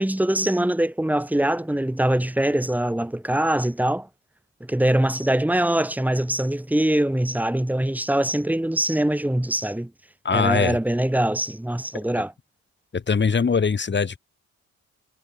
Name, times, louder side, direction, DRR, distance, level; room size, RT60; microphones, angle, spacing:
voice 1, 0.0-4.1 4.6-9.9 10.3-12.3, right 1 dB, 5° right, 5.1 m, -23 dB
voice 2, 10.2-10.8 12.9-14.2, left 5 dB, 35° left, 6.4 m, -21 dB
cardioid pair, 90°, 30 cm